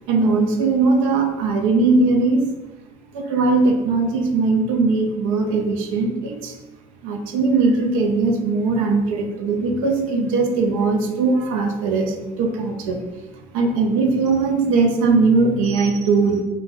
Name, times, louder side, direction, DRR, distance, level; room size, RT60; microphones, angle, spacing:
voice 1, 0.1-2.4 3.1-6.6 7.0-16.4, right 3 dB, 70° right, 4 dB, 0.6 m, -20 dB
3.9 x 2.7 x 3.7 m, 1.1 s
figure-of-eight pair, 50°, 18 cm